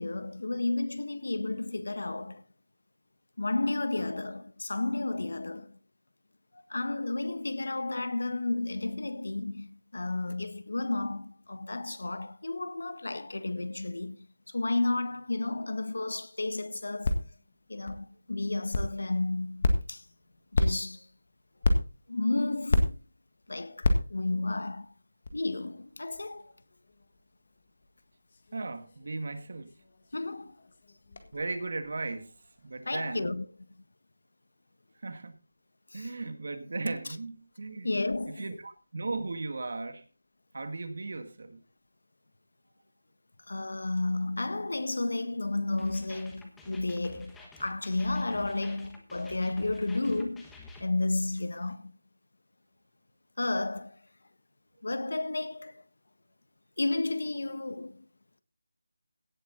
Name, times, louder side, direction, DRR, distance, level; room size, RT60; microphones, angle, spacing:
voice 1, 0.0-2.4 3.4-5.8 6.5-17.2 17.7-20.0 20.5-21.0 22.1-23.0 23.5-24.9 25.3-26.4 30.1-30.5 32.8-33.5 35.9-36.1 37.8-38.4 43.5-50.5 50.8-51.9 53.4-54.0 54.8-55.8 56.8-58.0, left 2 dB, 70° left, 1.6 m, -32 dB
sound 1, 16.4-32.8, left 2 dB, 35° left, 1.8 m, -34 dB
voice 2, 28.5-29.7 31.3-32.3 32.6-33.3 35.0-35.3 35.9-38.0 38.4-40.0 40.5-41.6, right 3 dB, 50° right, 2.0 m, -36 dB
sound 2, 45.8-50.8, left 2 dB, 5° left, 1.2 m, -50 dB
17.0 x 8.0 x 4.1 m
figure-of-eight pair, 175°, 0 cm